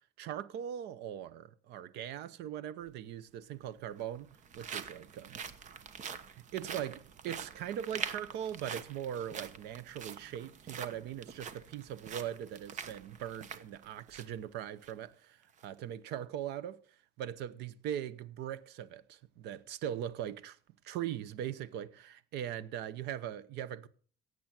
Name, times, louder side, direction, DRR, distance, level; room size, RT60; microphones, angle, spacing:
voice 1, 0.2-4.3 4.5-5.4 6.4-15.4 15.6-16.8 17.2-20.6 20.8-23.9, right 10 dB, 80° right, 0.9 m, -40 dB
sound 1, 2.8-2.9 3.8-14.4 14.8-14.9 15.4-15.7, right 7 dB, 45° right, 1.1 m, -45 dB
17.0 x 7.8 x 6.0 m
cardioid pair, 135°, 17 cm